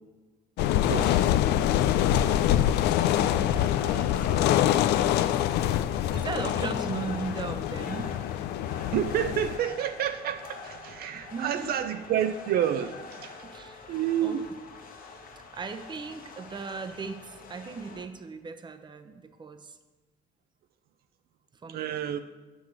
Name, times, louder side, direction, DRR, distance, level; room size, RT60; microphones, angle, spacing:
sound 1, 0.6-9.6, left 11 dB, 80° left, 0.4 m, -25 dB
voice 1, 0.9-1.3 8.9-13.4 13.9-14.4 21.7-22.2, right 10 dB, 65° right, 8 dB, 0.5 m, -29 dB
sound 2, 1.7-18.0, left 4 dB, 60° left, 1.3 m, -45 dB
voice 2, 3.0-5.4 6.1-8.1 11.1-11.8 13.4-14.0 14.2-14.4 15.5-19.8 21.6-21.9, right 5 dB, 25° right, 8 dB, 0.8 m, -38 dB
8.3 x 6.1 x 6.3 m, 1.2 s
cardioid pair, 110°, 17 cm